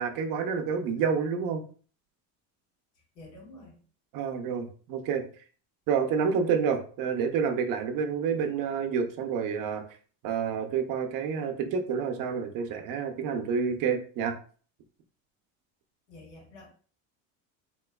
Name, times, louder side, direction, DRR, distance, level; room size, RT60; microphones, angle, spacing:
voice 1, 0.0-1.6 4.1-5.2 5.9-9.8 10.2-14.3, right 6 dB, 50° right, 6 dB, 0.6 m, -28 dB
voice 2, 3.1-3.8 16.1-16.7, left 2 dB, 80° left, -3 dB, 1.6 m, -49 dB
3.7 x 2.9 x 2.3 m, 0.42 s
cardioid pair, 140°, 41 cm